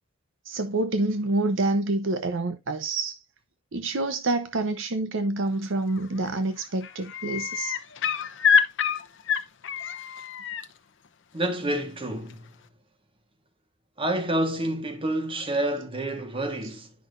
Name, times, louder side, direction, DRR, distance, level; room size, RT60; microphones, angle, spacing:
voice 1, 0.5-3.2 3.7-7.8, right 2 dB, 65° right, 0.8 m, -27 dB
sound 1, 5.9-6.3 6.6-10.6 12.3-12.4, left 7 dB, 65° left, 0.8 m, -26 dB
voice 2, 11.3-12.5 14.0-16.9, right 1 dB, 25° right, 1.4 m, -28 dB
10.5 x 6.0 x 2.5 m
head